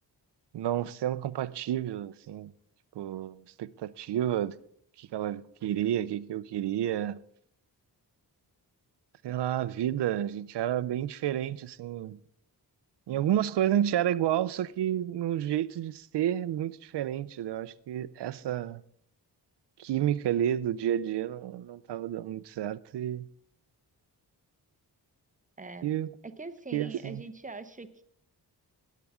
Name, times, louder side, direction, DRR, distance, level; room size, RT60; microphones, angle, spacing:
voice 1, 0.5-2.5 3.0-4.6 5.0-7.2 9.2-12.2 13.1-18.8 19.8-23.3 25.8-26.1 26.7-27.2, right 11 dB, 80° right, 0.6 m, -30 dB
voice 2, 25.6-25.9 26.2-28.0, right 3 dB, 20° right, 0.7 m, -43 dB
17.5 x 8.4 x 3.6 m
wide cardioid pair, 120°, 41 cm